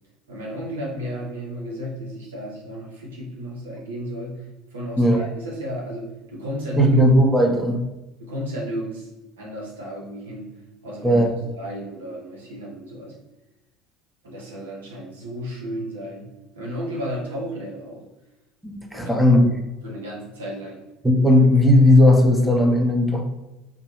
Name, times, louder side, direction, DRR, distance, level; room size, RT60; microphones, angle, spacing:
voice 1, 0.3-6.9 7.4-7.7 8.2-9.1 9.4-11.3 11.6-13.2 14.2-18.1 18.9-19.2 19.8-20.8, equal, 85° right, -3 dB, 0.8 m, -33 dB
voice 2, 6.8-7.8 11.0-11.4 18.6-19.5 21.0-23.2, left 1 dB, 5° right, 2 dB, 0.6 m, -16 dB
2.4 x 2.2 x 3.1 m, 1.0 s
hypercardioid pair, 70°, 0 cm